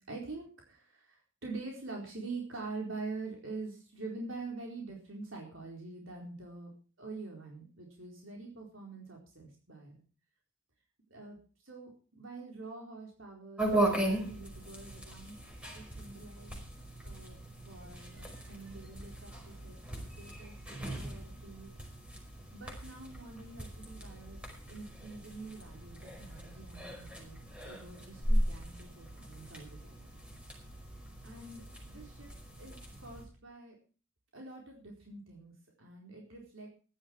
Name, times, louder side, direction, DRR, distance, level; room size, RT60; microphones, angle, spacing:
voice 1, 0.1-6.7 7.0-10.0 11.1-11.4 11.6-15.4 15.7-16.6 17.0-19.8 20.2-20.6 20.8-21.7 22.5-24.4 24.7-27.4 27.6-30.1 31.2-32.3 32.6-33.8 34.3-36.7, right 3 dB, 75° right, 0 dB, 4.3 m, -45 dB
sound 1, 13.6-33.2, right 1 dB, 5° right, 5.1 m, -38 dB
16.0 x 12.0 x 4.6 m, 0.37 s
head